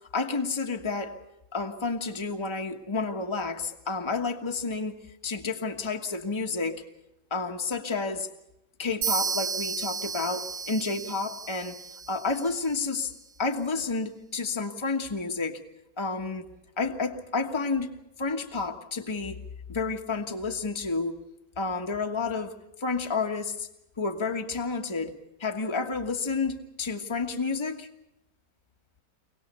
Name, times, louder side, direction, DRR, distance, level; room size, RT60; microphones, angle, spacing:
voice 1, 0.1-1.2 1.5-6.8 7.3-8.3 8.8-11.8 12.1-13.1 13.4-15.6 16.0-16.4 16.8-17.9 18.2-19.4 19.7-21.2 21.6-23.7 24.0-25.1 25.4-27.9, left 4 dB, 15° left, 5 dB, 1.3 m, -30 dB
sound 1, 9.0-12.8, right 6 dB, 70° right, 1.9 m, -33 dB
25.5 x 18.5 x 6.9 m, 0.88 s
omnidirectional pair, 1.9 m